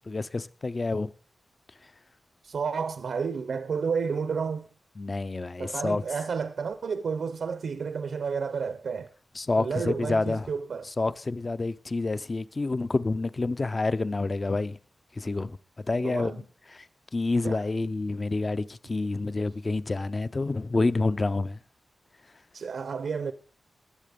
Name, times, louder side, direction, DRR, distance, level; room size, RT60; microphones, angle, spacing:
voice 1, 0.1-1.1 5.0-6.0 9.3-10.5 10.8-14.8 15.1-15.6 15.9-16.3 16.7-16.9 17.1-21.6, left 3 dB, 30° left, 0.5 m, -28 dB
voice 2, 2.4-4.7 5.6-9.1 9.6-10.9 16.0-16.4 17.4-17.6 22.5-23.3, right 5 dB, 80° right, 0.8 m, -31 dB
20.0 x 7.5 x 5.1 m
wide cardioid pair, 170°, 0 cm